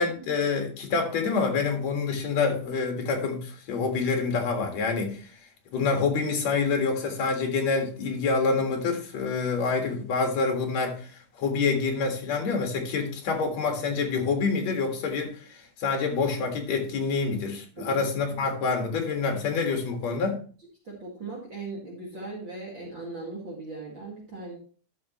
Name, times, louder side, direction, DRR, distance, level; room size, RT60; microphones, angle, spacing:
voice 1, 0.0-5.3 5.7-20.4, left 4 dB, 60° left, 2.8 m, -27 dB
voice 2, 17.8-18.4 20.8-24.6, right 3 dB, 40° right, 2.3 m, -39 dB
12.0 x 6.2 x 3.0 m
omnidirectional pair, 3.7 m